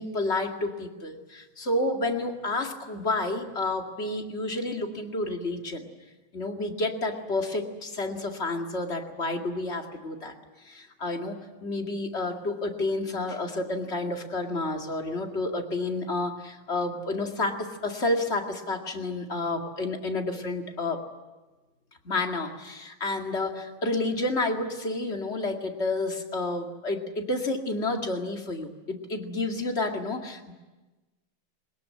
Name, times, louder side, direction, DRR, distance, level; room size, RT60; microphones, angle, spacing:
voice 1, 0.0-5.9 6.3-10.3 10.6-21.0 22.0-30.5, left 2 dB, 30° left, 3 dB, 2.4 m, -30 dB
22.0 x 20.5 x 9.5 m, 1.2 s
omnidirectional pair, 2.3 m